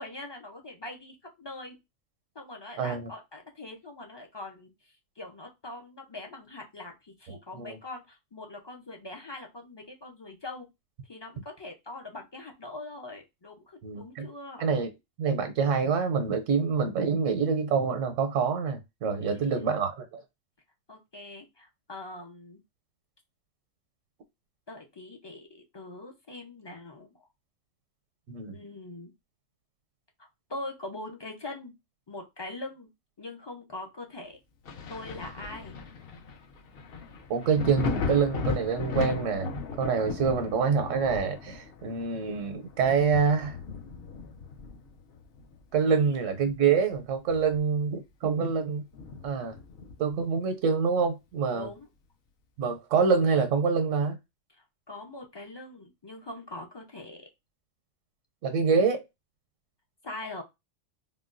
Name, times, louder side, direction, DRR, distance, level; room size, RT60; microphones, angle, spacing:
voice 1, 0.0-1.8 2.3-4.7 5.2-10.7 11.1-14.7 19.2-19.8 20.9-22.6 24.7-27.3 28.5-29.1 30.2-31.7 32.1-32.9 33.2-34.4 34.9-35.7 45.9-46.2 51.5-51.9 54.9-57.3 60.0-60.4, left 2 dB, 35° left, 0.4 m, -42 dB
voice 2, 2.8-3.1 7.3-7.8 13.8-14.3 14.6-14.9 15.2-20.2 28.3-28.6 37.3-39.5 39.8-43.6 45.7-48.8 49.2-49.5 50.0-51.7 52.6-54.2 58.4-59.0, right 5 dB, 80° right, 1.0 m, -26 dB
Thunder, 34.6-46.0 46.4-47.9 48.3-48.4 48.9-50.2 51.6-51.7, left 5 dB, 55° left, 0.8 m, -37 dB
3.7 x 2.2 x 2.4 m
omnidirectional pair, 1.3 m